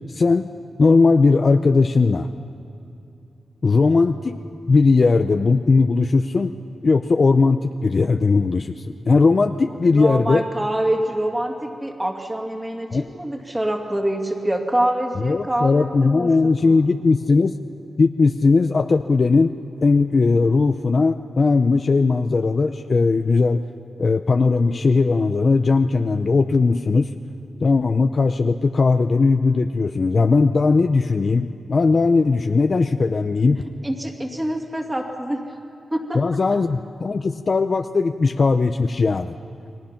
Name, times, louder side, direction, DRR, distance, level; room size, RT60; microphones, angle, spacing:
voice 1, 0.1-0.5 0.8-2.3 3.6-4.4 4.7-6.6 6.8-10.4 12.9-13.1 15.2-17.6 18.0-19.5 19.8-23.6 24.0-27.1 27.6-33.6 36.1-39.4, left 4 dB, 40° left, 7 dB, 0.6 m, -18 dB
voice 2, 9.8-16.3 16.6-16.8 33.8-35.4 35.9-36.3, right 1 dB, 15° right, 2 dB, 2.4 m, -25 dB
30.0 x 21.5 x 5.9 m, 2.7 s
wide cardioid pair, 140°, 0 cm